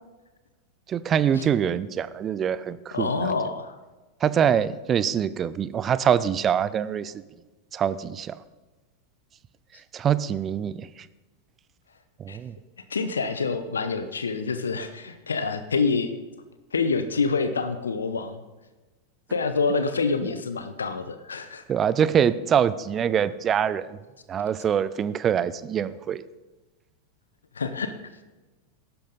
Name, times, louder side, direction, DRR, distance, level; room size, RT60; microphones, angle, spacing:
voice 1, 0.9-3.3 4.2-7.1 7.7-8.4 9.9-10.9 12.2-12.5 21.7-24.0 24.3-26.2, right 8 dB, 25° right, 16 dB, 0.5 m, -24 dB
voice 2, 2.9-3.8 12.3-12.4 12.9-16.1 16.7-18.4 19.3-21.6 27.5-27.9, left 4 dB, 70° left, 11 dB, 0.8 m, -27 dB
15.5 x 11.5 x 4.0 m, 1.2 s
figure-of-eight pair, 90°, 0 cm